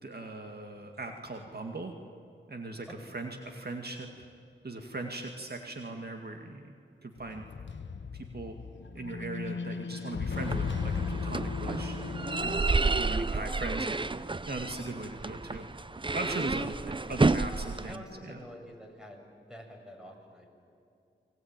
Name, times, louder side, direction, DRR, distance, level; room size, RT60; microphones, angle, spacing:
voice 1, 0.0-1.9 2.5-4.1 4.6-6.7 7.0-7.4 8.1-8.6 8.9-12.1 12.4-15.7 16.1-18.4, right 2 dB, 55° right, 4 dB, 2.1 m, -39 dB
sound 1, 7.2-12.6, left 5 dB, 70° left, 1.1 m, -36 dB
sound 2, 10.4-18.0, right 3 dB, 25° right, 0.7 m, -31 dB
voice 2, 17.9-19.2 19.5-20.5, left 1 dB, 5° right, 2 dB, 6.9 m, -47 dB
30.0 x 22.0 x 9.1 m, 2.5 s
cardioid pair, 55°, 20 cm